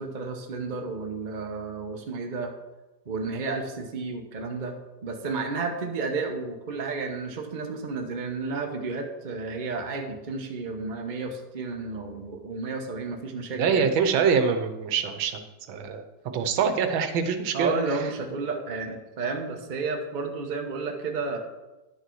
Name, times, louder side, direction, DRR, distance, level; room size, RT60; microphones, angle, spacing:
voice 1, 0.0-2.5 3.0-4.7 5.0-13.9 17.5-21.4, right 4 dB, 30° right, 3 dB, 1.0 m, -32 dB
voice 2, 13.6-15.4 15.7-16.0 16.3-17.7, right 6 dB, 90° right, 8 dB, 1.6 m, -24 dB
10.5 x 6.6 x 4.6 m, 1.1 s
omnidirectional pair, 2.1 m